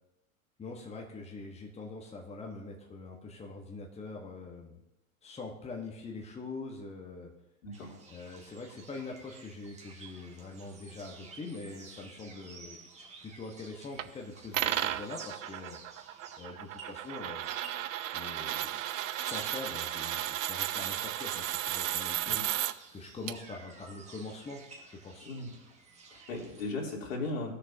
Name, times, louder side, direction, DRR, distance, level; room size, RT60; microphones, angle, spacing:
voice 1, 0.6-4.8 5.2-7.3 8.1-12.8 13.2-15.8 16.4-17.4 18.1-18.8 19.2-22.4 22.9-25.3, left 3 dB, 15° left, 0 dB, 1.4 m, -43 dB
voice 2, 7.6-7.9 22.3-22.4 25.3-25.5 26.1-27.5, left 2 dB, 70° left, -2 dB, 3.5 m, -37 dB
sound 1, 7.7-26.7, right 4 dB, 15° right, 1.8 m, -52 dB
sound 2, 14.0-14.1 14.5-22.7 23.3-23.4, right 13 dB, 65° right, 0.6 m, -34 dB
18.0 x 6.8 x 2.9 m, 0.92 s
figure-of-eight pair, 90°, 41 cm